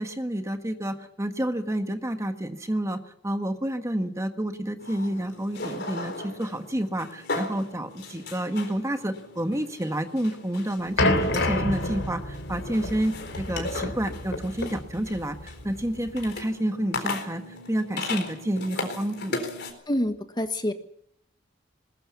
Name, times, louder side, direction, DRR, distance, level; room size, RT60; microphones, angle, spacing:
voice 1, 0.0-19.3, right 1 dB, 15° right, 7 dB, 1.5 m, -29 dB
sound 1, 4.8-19.7, left 3 dB, 60° left, 4.1 m, -37 dB
sound 2, 11.0-16.4, left 2 dB, 85° left, 3.1 m, -29 dB
voice 2, 19.9-20.7, left 1 dB, 25° left, 8 dB, 1.5 m, -27 dB
21.0 x 20.5 x 7.1 m, 0.74 s
head